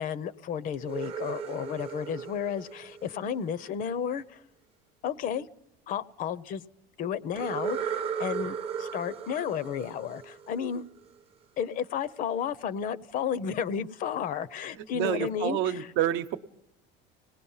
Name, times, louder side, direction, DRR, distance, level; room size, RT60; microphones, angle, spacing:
voice 1, 0.0-4.4 5.0-5.5 5.9-6.6 7.0-10.8 11.6-15.9, left 8 dB, 45° left, 17 dB, 0.7 m, -32 dB
sound 1, 0.7-3.7 7.4-11.1, right 7 dB, 30° right, 0.7 m, -36 dB
voice 2, 14.9-16.4, right 12 dB, 65° right, 10 dB, 0.9 m, -28 dB
25.5 x 19.0 x 5.6 m, 0.80 s
cardioid pair, 160°, 20 cm